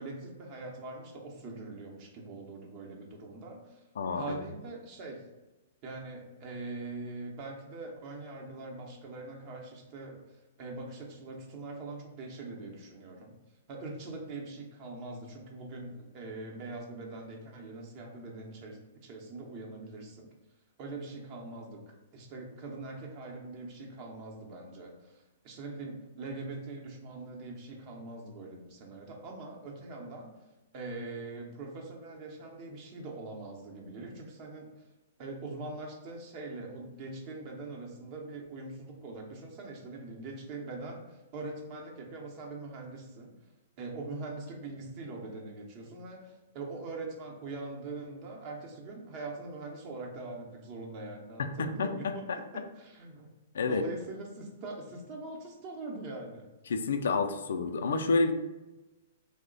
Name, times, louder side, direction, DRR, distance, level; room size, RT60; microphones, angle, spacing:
voice 1, 0.0-3.8 4.1-5.2 5.8-10.2 10.6-13.3 13.7-20.3 20.8-30.3 30.7-34.7 35.2-43.3 43.8-52.4 52.8-53.3 53.7-56.5, right 2 dB, 40° right, 0 dB, 0.7 m, -42 dB
voice 2, 4.0-4.4 51.4-52.6 53.5-53.8 56.7-58.3, left 4 dB, 75° left, 6 dB, 0.3 m, -29 dB
3.0 x 2.1 x 3.8 m, 1.1 s
hypercardioid pair, 125°, 0 cm